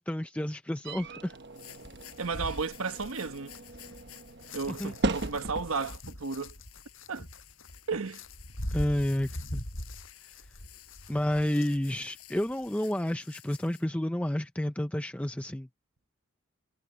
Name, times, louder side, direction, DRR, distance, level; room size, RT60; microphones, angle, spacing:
voice 1, 0.0-1.4 4.7-4.9 8.7-9.6 11.1-15.7, left 1 dB, 5° left, 0.5 m, -30 dB
sound 1, 0.8-6.0, right 2 dB, 50° right, 1.1 m, -37 dB
sound 2, 1.3-13.8, left 13 dB, 85° left, 7.5 m, -55 dB
sound 3, 1.8-12.0 12.4-12.7, left 1 dB, 60° left, 7.1 m, -42 dB
voice 2, 2.2-3.6 4.5-6.5 7.1-7.3 7.9-8.2, right 4 dB, 70° right, 1.1 m, -33 dB
head